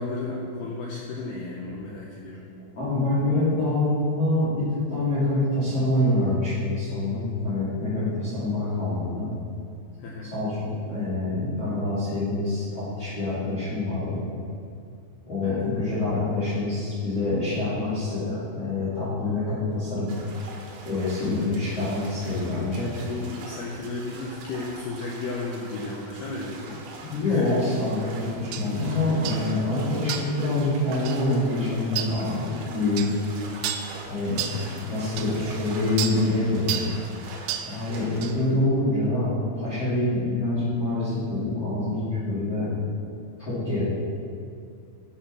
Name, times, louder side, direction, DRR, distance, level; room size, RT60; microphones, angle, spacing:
voice 1, 0.0-2.4 10.0-10.3 15.4-15.7 23.0-26.8 27.3-27.6 34.5-34.8, left 3 dB, 85° left, -2 dB, 2.3 m, -33 dB
voice 2, 2.7-9.3 10.2-14.2 15.3-20.1 20.8-23.0 27.0-33.1 34.1-34.4 34.9-36.8 37.6-42.7 43.4-43.8, left 2 dB, 35° left, -12 dB, 3.1 m, -26 dB
sound 1, 20.1-38.5, right 3 dB, 65° right, 2.6 m, -43 dB
sound 2, 28.5-28.7 29.3-29.5 30.1-30.4 31.1-31.2 32.0-32.1 33.0-33.2 33.6-33.9 34.4-34.6 35.2-35.3 36.0-36.2 36.7-36.9 37.5-37.7 38.2-38.4, right 10 dB, 85° right, 2.7 m, -30 dB
9.9 x 6.7 x 6.0 m, 2.4 s
omnidirectional pair, 5.8 m